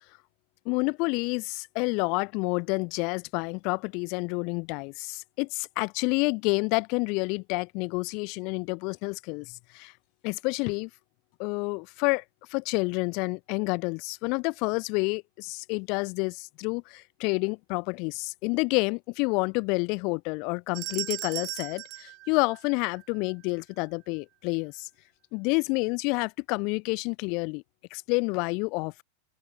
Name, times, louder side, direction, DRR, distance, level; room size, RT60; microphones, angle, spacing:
voice 1, 0.6-9.9 10.2-10.9 11.4-12.2 12.5-24.9 25.3-27.6 27.9-29.0, left 31 dB, 45° left, 3.1 m, -29 dB
sound 1, 20.7-23.2, right 19 dB, 40° right, 1.6 m, -37 dB
open air
figure-of-eight pair, 90°, 0 cm